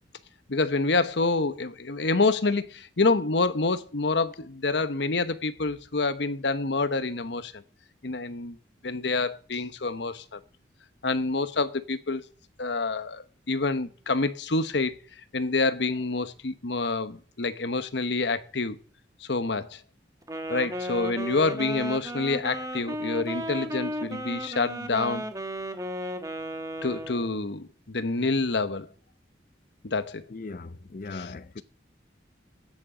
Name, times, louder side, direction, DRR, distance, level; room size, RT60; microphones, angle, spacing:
voice 1, 0.5-7.6 8.0-8.6 8.8-10.4 11.0-12.2 12.6-15.0 15.3-18.8 19.2-19.8 20.5-25.2 26.8-28.9 29.8-30.2 31.1-31.3, left 3 dB, 70° left, 1.0 m, -27 dB
Wind instrument woodwind instrument, 20.2-27.4, equal, 20° right, 1.1 m, -34 dB
voice 2, 30.3-31.6, left 3 dB, 45° left, 0.5 m, -39 dB
9.7 x 8.8 x 6.4 m
head